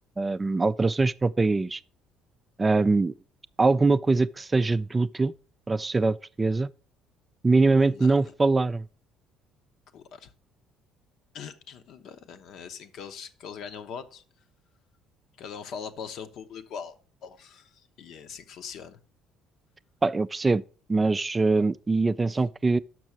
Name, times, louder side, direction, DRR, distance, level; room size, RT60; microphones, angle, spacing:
voice 1, 0.2-1.8 2.6-3.1 3.6-5.3 5.7-6.7 7.4-8.8 20.0-20.6 20.9-22.8, right 3 dB, 25° right, 0.3 m, -23 dB
voice 2, 7.8-8.3 9.9-10.3 11.3-14.2 15.4-17.0 17.2-19.0, left 7 dB, 60° left, 0.8 m, -41 dB
6.2 x 6.1 x 6.0 m
hypercardioid pair, 55°, 0 cm